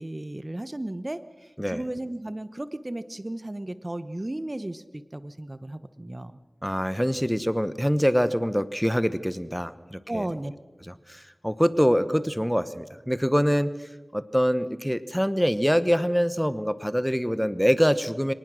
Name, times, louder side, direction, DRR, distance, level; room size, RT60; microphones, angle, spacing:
voice 1, 0.0-6.4 10.1-10.5, right 1 dB, 30° right, 13 dB, 0.9 m, -34 dB
voice 2, 6.6-10.2 11.1-13.7 14.1-18.3, equal, ahead, 14 dB, 0.9 m, -24 dB
24.5 x 19.0 x 6.2 m, 1.2 s
wide cardioid pair, 55°, 0 cm